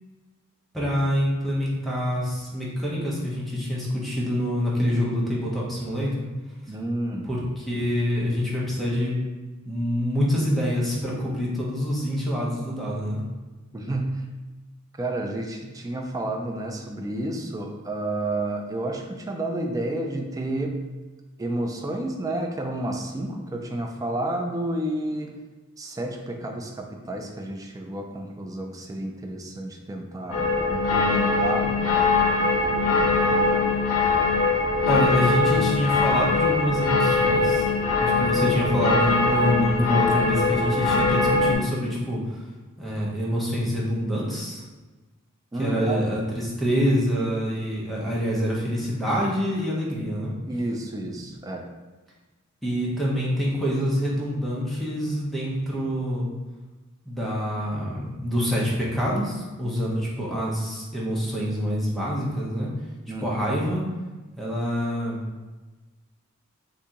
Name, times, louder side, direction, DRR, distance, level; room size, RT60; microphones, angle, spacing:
voice 1, 0.7-6.2 7.2-9.2 9.7-13.2 34.9-37.7 38.0-42.2 42.8-44.6 45.6-50.3 52.6-56.3 57.1-62.7 63.2-63.8 64.4-65.3, equal, ahead, -6 dB, 0.7 m, -26 dB
voice 2, 6.7-7.3 13.7-14.2 15.0-20.8 21.4-25.3 25.8-31.7 33.3-33.9 45.5-46.0 50.5-51.7 63.1-63.5, right 1 dB, 15° right, 2 dB, 0.3 m, -30 dB
sound 1, 30.3-41.5, left 3 dB, 65° left, 0.8 m, -22 dB
2.8 x 2.7 x 3.6 m, 1.2 s
head